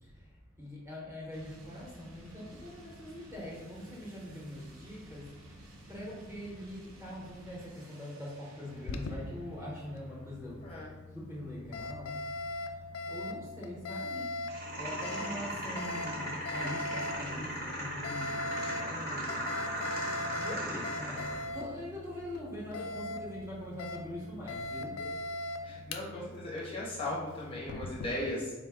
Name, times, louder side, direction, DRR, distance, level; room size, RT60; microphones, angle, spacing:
voice 1, 0.0-5.6 5.9-10.7 11.1-12.2 12.6-14.3 14.7-19.6 20.3-25.0, left 1 dB, 15° right, -5 dB, 0.8 m, -43 dB
sound 1, 1.3-10.2, right 1 dB, 75° right, 0.7 m, -53 dB
Alarm, 8.7-28.1, left 2 dB, 75° left, 0.3 m, -41 dB
sound 2, 14.5-21.5, equal, 45° right, 0.9 m, -37 dB
voice 2, 25.6-28.5, left 1 dB, 25° left, -5 dB, 0.6 m, -37 dB
3.9 x 2.2 x 3.5 m, 1.2 s
head